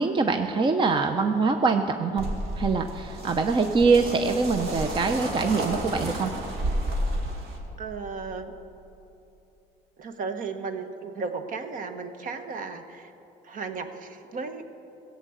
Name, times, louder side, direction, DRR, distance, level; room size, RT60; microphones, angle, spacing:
voice 1, 0.0-2.3 2.6-6.3, right 4 dB, 30° right, 6 dB, 0.6 m, -24 dB
sound 1, 2.2-7.6, right 1 dB, 70° right, 2.3 m, -31 dB
voice 2, 7.8-8.5 10.0-13.1 13.4-14.7, right 4 dB, 55° right, 8 dB, 1.1 m, -35 dB
16.0 x 8.3 x 7.9 m, 2.9 s
cardioid pair, 110°, 17 cm